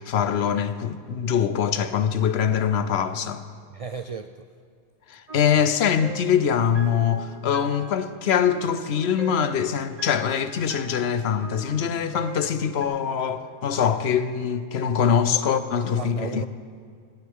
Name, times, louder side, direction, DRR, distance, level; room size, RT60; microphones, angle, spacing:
voice 1, 0.0-3.4 5.1-16.4, left 8 dB, 70° left, 0.9 m, -23 dB
voice 2, 3.7-4.5 5.5-5.7 15.3-15.5 15.9-16.5, right 5 dB, 60° right, 0.3 m, -35 dB
sound 1, 5.3-12.8, right 4 dB, 35° right, 1.2 m, -42 dB
17.5 x 14.5 x 3.7 m
omnidirectional pair, 1.1 m